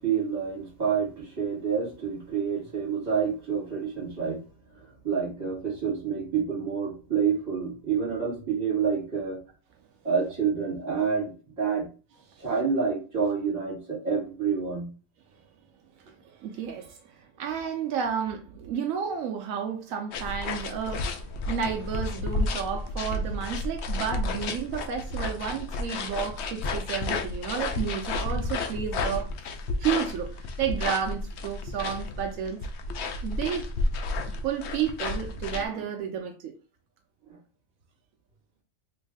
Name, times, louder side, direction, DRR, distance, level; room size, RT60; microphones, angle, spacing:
voice 1, 0.0-4.4 4.8-9.4 10.0-11.9 12.4-14.9, right 6 dB, 30° right, 1.7 m, -28 dB
voice 2, 16.4-21.2 21.5-29.3 29.8-32.6 33.2-33.7 34.2-36.5, right 8 dB, 75° right, 1.0 m, -31 dB
sound 1, 20.1-35.7, left 2 dB, 65° left, 0.8 m, -32 dB
3.2 x 2.6 x 3.4 m
omnidirectional pair, 1.4 m